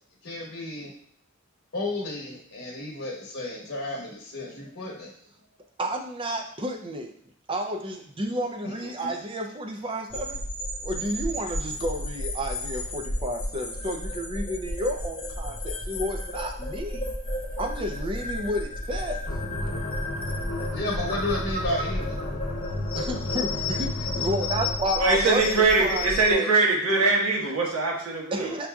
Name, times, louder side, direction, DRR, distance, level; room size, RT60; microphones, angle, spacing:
voice 1, 0.2-0.9 1.7-5.1 8.8-9.1 20.7-22.2, left 2 dB, 55° left, -4 dB, 0.9 m, -32 dB
voice 2, 5.8-7.1 7.5-10.4 10.8-17.1 17.6-19.3 22.9-25.5 25.8-26.6 28.3-28.7, equal, 25° right, 3 dB, 0.4 m, -31 dB
sound 1, 10.1-26.3, left 2 dB, 25° left, 0.6 m, -33 dB
sound 2, 19.3-24.9, left 1 dB, 85° left, 0.8 m, -33 dB
voice 3, 25.0-28.5, right 3 dB, 85° right, -3 dB, 1.2 m, -22 dB
5.7 x 2.6 x 2.3 m, 0.67 s
head